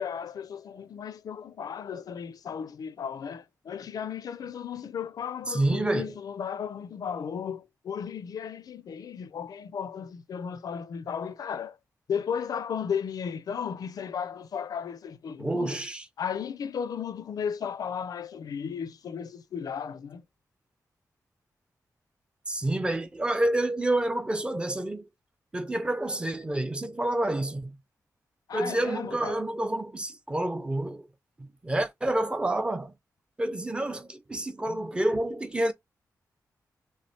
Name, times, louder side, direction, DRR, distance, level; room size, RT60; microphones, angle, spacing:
voice 1, 0.0-11.8 12.1-15.8 16.2-20.2 28.5-29.4 34.7-34.8, left 7 dB, 75° left, 0.5 m, -35 dB
voice 2, 5.5-6.1 15.4-16.1 22.5-25.1 25.5-27.8 28.5-31.1 31.4-32.9 33.4-35.7, right 1 dB, 15° right, 0.5 m, -28 dB
3.3 x 3.1 x 4.2 m
wide cardioid pair, 155°, 6 cm